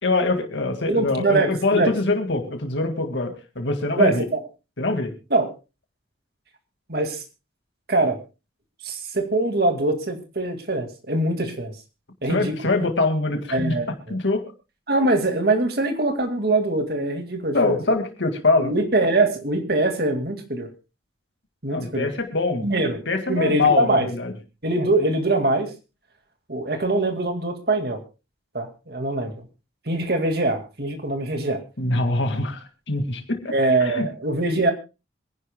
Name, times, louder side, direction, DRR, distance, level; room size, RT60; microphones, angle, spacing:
voice 1, 0.0-4.3 4.8-5.1 12.3-13.8 14.1-14.4 17.5-18.7 21.7-22.7 23.1-24.3 31.8-33.5 33.8-34.1, left 2 dB, 85° left, 5 dB, 2.0 m, -23 dB
voice 2, 0.9-1.9 4.0-4.4 5.3-5.5 6.9-7.2 7.9-8.2 8.8-11.7 12.2-12.5 13.5-14.2 14.9-17.8 18.6-20.7 21.6-22.1 22.6-23.0 23.3-24.1 24.6-25.7 26.5-28.0 28.5-29.3 29.9-31.6 33.5-34.7, right 2 dB, 55° right, 6 dB, 2.1 m, -23 dB
26.0 x 10.5 x 2.2 m, 0.29 s
head